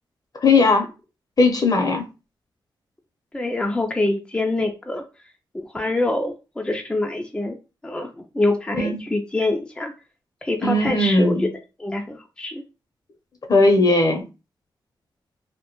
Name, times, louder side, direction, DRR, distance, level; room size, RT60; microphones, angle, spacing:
voice 1, 0.4-0.9 1.4-2.1 8.8-9.0 10.6-11.5 13.5-14.2, left 2 dB, 45° left, 0.7 m, -18 dB
voice 2, 3.3-5.0 5.5-7.6 7.8-9.9 10.4-11.5 11.8-12.6, left 2 dB, 10° left, 0.4 m, -25 dB
2.2 x 2.1 x 2.9 m
cardioid pair, 75°, 8 cm